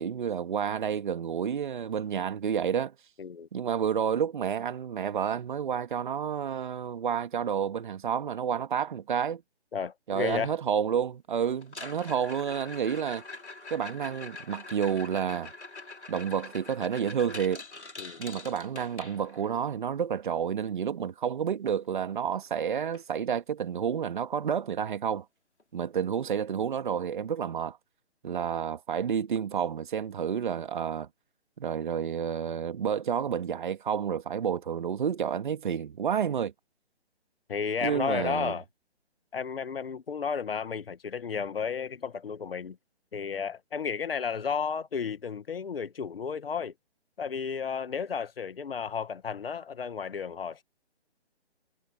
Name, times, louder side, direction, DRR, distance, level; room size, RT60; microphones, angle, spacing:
voice 1, 0.0-2.9 3.5-9.4 10.1-13.2 13.7-15.5 16.1-17.6 18.2-25.2 25.7-27.8 28.2-31.1 31.6-36.5 37.8-38.5, right 8 dB, 45° right, 1.9 m, -30 dB
voice 2, 9.7-10.5 18.0-18.2 37.5-38.6 39.3-42.8 43.1-46.7 47.2-50.6, left 6 dB, 60° left, 1.9 m, -33 dB
sound 1, 11.6-19.6 21.8-21.9 22.2-22.5 22.9-23.0 23.6-23.7 25.6-25.7, left 3 dB, 85° left, 4.1 m, -44 dB
figure-of-eight pair, 145°, 33 cm